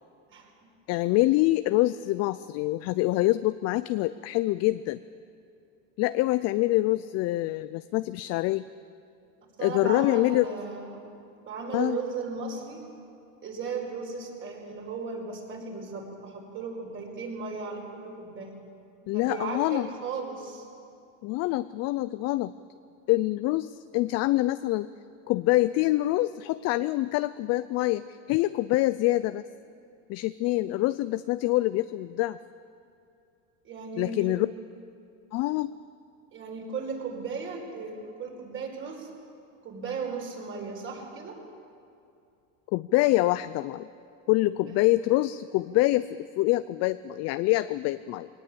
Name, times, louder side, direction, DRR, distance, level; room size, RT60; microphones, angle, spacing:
voice 1, 0.9-5.0 6.0-8.6 9.6-10.5 11.7-12.0 19.1-19.9 21.2-22.5 23.1-24.9 25.3-29.5 30.1-32.4 34.0-34.5 35.3-35.7 42.7-43.9 44.3-48.3, left 18 dB, 45° left, 14 dB, 0.5 m, -25 dB
voice 2, 9.6-11.0 11.4-12.8 13.4-18.5 19.1-20.7 33.6-34.4 36.3-39.1 39.6-41.4 44.7-44.9, right 4 dB, 30° right, 1 dB, 4.9 m, -36 dB
20.5 x 19.0 x 8.6 m, 2.5 s
supercardioid pair, 130°, 38 cm